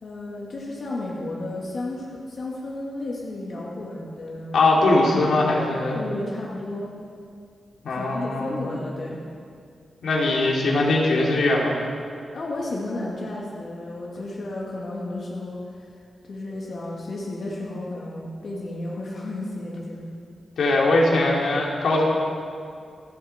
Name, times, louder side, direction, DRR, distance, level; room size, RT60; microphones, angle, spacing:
voice 1, 0.0-4.7 5.9-6.9 7.9-9.2 12.3-15.9 16.3-20.1, left 2 dB, 50° left, -4 dB, 2.3 m, -33 dB
voice 2, 4.5-6.0 7.8-8.6 10.0-11.7 20.6-22.0, left 2 dB, 75° left, -3 dB, 2.9 m, -21 dB
27.5 x 10.5 x 4.5 m, 2.3 s
wide cardioid pair, 175°, 0 cm